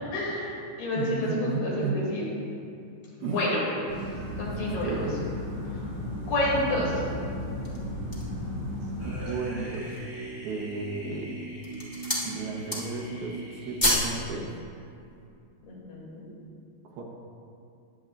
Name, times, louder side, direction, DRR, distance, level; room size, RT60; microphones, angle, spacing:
voice 1, 0.1-2.2 3.2-3.6 4.4-5.0 5.7-5.9 6.3-6.9 15.6-16.2, left 1 dB, 85° left, -5 dB, 4.8 m, -29 dB
voice 2, 0.9-2.0 3.2-3.4 4.6-5.2 6.7-7.2 9.0-10.0 10.4-11.3 12.2-14.6 16.8-17.0, right 4 dB, 80° right, -1 dB, 3.1 m, -34 dB
sound 1, 3.9-9.2, left 1 dB, 30° right, 3.1 m, -34 dB
sound 2, 7.4-8.4 9.0-9.1 9.6-10.1 10.8-11.2 11.5-12.3 12.6-13.1 13.4-14.2 14.5-14.6, left 1 dB, 55° left, 0.5 m, -29 dB
sound 3, 9.0-14.3, right 2 dB, 5° right, 2.2 m, -40 dB
20.0 x 8.5 x 2.6 m, 2.5 s
omnidirectional pair, 4.4 m